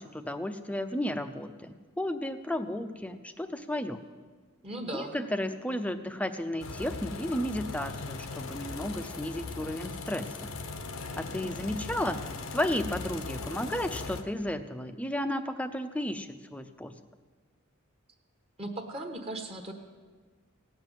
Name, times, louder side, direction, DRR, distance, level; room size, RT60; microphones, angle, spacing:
voice 1, 0.0-4.0 4.9-10.5 11.2-12.2 12.5-16.9, left 1 dB, 5° left, 9 dB, 0.6 m, -33 dB
voice 2, 4.6-5.2 18.6-19.7, right 1 dB, 30° right, 4 dB, 1.3 m, -37 dB
sound 1, 6.6-14.2, left 3 dB, 85° left, 1.1 m, -39 dB
17.0 x 7.8 x 9.1 m, 1.5 s
head